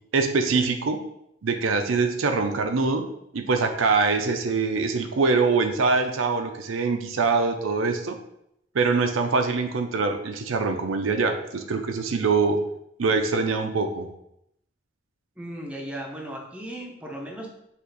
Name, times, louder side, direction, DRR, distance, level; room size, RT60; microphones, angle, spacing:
voice 1, 0.1-1.0 1.4-3.1 3.3-8.2 8.7-12.6 13.0-14.1, right 4 dB, 85° right, 6 dB, 0.5 m, -24 dB
voice 2, 15.4-17.5, right 1 dB, 5° right, 0 dB, 0.6 m, -36 dB
5.4 x 2.5 x 3.9 m, 0.77 s
head